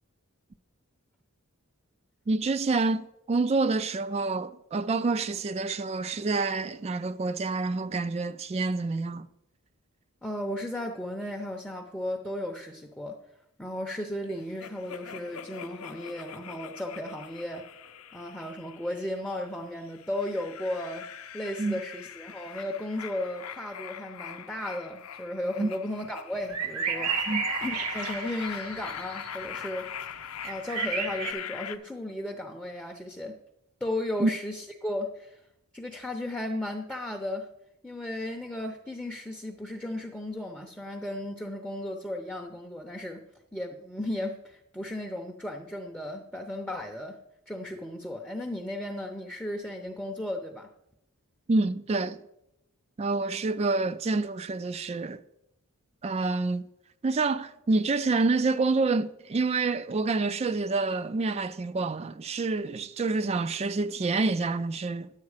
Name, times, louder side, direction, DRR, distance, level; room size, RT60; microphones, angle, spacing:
voice 1, 2.3-9.3 21.6-21.8 25.6-25.7 27.3-27.4 34.2-34.3 51.5-52.2 53.0-55.2 56.0-56.6 57.0-65.1, right 3 dB, 30° right, 0.3 m, -27 dB
voice 2, 10.2-13.2 13.6-17.8 18.1-21.1 21.3-27.3 27.6-30.1 30.4-33.4 33.8-35.4 35.7-37.5 37.8-43.2 43.5-47.2 47.5-50.7, left 1 dB, 5° left, 0.6 m, -35 dB
sound 1, 14.6-19.3 19.8-31.8, left 8 dB, 70° left, 0.6 m, -41 dB
sound 2, 26.4-29.5 29.8-31.3, right 7 dB, 85° right, 1.2 m, -33 dB
10.5 x 8.2 x 4.8 m
head